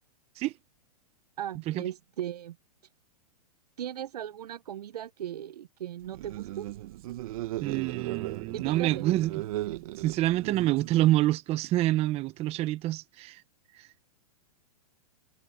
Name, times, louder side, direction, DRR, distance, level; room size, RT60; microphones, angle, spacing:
voice 1, 1.4-2.6 3.8-6.7 8.5-9.1, right 11 dB, 75° right, 1.4 m, -37 dB
sound 1, 6.1-11.2, right 16 dB, 60° right, 1.5 m, -37 dB
voice 2, 7.6-9.4 10.0-13.4 13.8-13.9, right 15 dB, 30° right, 1.2 m, -27 dB
hypercardioid pair, 130°, 20 cm